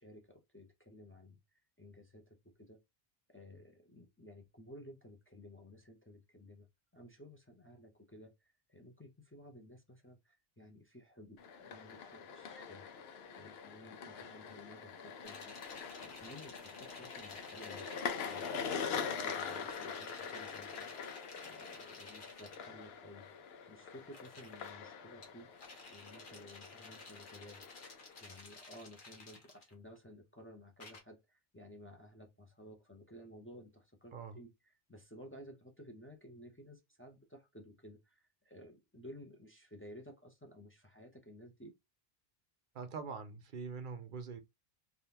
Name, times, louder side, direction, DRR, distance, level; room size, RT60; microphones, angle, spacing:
voice 1, 0.0-2.8 3.3-6.7 6.9-15.6 16.0-17.9 18.2-20.9 21.4-41.7, left 1 dB, 15° left, 0.5 m, -55 dB
sound 1, 11.4-28.3, left 6 dB, 80° left, 0.8 m, -44 dB
sound 2, 15.2-22.6 24.0-24.7 25.2-30.0 30.8-31.0, left 3 dB, 55° left, 1.2 m, -53 dB
voice 2, 42.7-44.4, right 5 dB, 60° right, 0.7 m, -44 dB
3.5 x 2.5 x 2.8 m
omnidirectional pair, 1.0 m